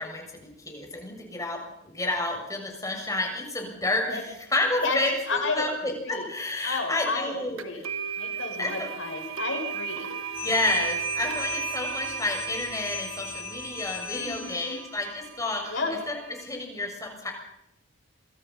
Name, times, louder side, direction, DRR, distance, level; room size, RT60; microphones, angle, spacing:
voice 1, 0.0-4.2 4.5-7.6 8.6-8.9 10.4-15.8 16.1-16.2 16.4-17.3, left 2 dB, 15° left, 2 dB, 7.3 m, -30 dB
voice 2, 5.3-5.7 6.0-6.3 6.6-7.9 8.2-10.1 14.1-14.8 15.7-15.9, left 3 dB, 60° left, 3 dB, 7.6 m, -31 dB
sound 1, 7.6-16.4, right 8 dB, 80° right, 1.9 m, -35 dB
sound 2, 10.3-14.8, left 8 dB, 80° left, 6.1 m, -38 dB
27.5 x 25.5 x 5.8 m, 0.81 s
head